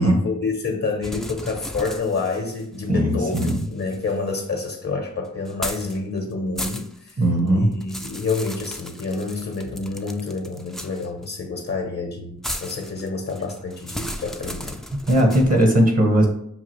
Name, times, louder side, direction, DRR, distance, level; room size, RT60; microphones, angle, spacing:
voice 1, 0.0-7.2 7.5-14.8, left 3 dB, 55° left, 2 dB, 0.7 m, -28 dB
sound 1, 1.0-2.8 3.3-4.7 5.5-6.0 6.3-7.1 7.5-11.3 12.4-15.7, equal, ahead, 0.3 m, -35 dB
voice 2, 2.9-3.6 7.2-7.7 15.1-16.3, right 1 dB, 50° right, 2 dB, 1.0 m, -18 dB
5.7 x 2.4 x 2.9 m, 0.72 s
cardioid pair, 40°, 31 cm